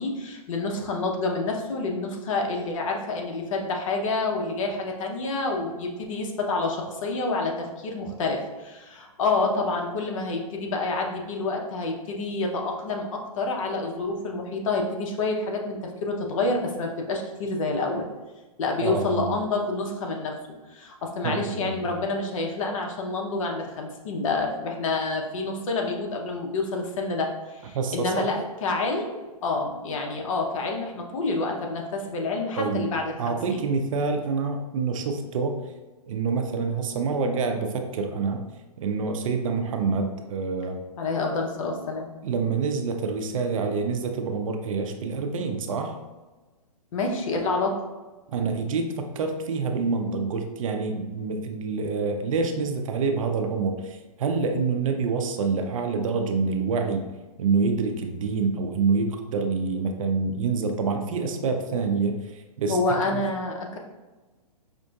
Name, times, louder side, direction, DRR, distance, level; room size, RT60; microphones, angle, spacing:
voice 1, 0.0-18.1 18.6-20.4 20.7-33.6 41.0-42.1 46.9-47.8 62.7-63.8, left 3 dB, 55° left, 2 dB, 0.8 m, -28 dB
voice 2, 18.8-19.3 21.2-21.9 27.7-28.3 32.6-32.9 33.2-35.6 36.1-38.5 38.8-40.8 42.2-45.9 48.3-57.0 57.4-62.8 63.1-63.2, right 4 dB, 55° right, 5 dB, 0.5 m, -27 dB
5.2 x 2.5 x 2.3 m, 1.2 s
hypercardioid pair, 140°, 20 cm